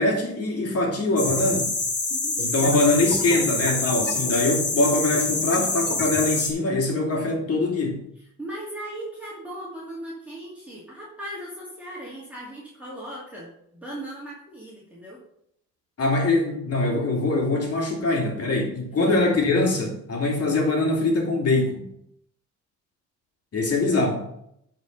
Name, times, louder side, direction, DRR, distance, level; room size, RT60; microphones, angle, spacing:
voice 1, 0.0-1.7 2.4-8.0 16.0-21.9 23.5-24.3, left 2 dB, 55° left, 0 dB, 2.9 m, -23 dB
sound 1, 1.2-6.5, left 3 dB, 35° left, 2.2 m, -26 dB
voice 2, 8.4-15.2 18.9-19.1, right 1 dB, 5° right, -6 dB, 2.5 m, -38 dB
10.0 x 4.5 x 5.4 m, 0.74 s
cardioid pair, 90°, 30 cm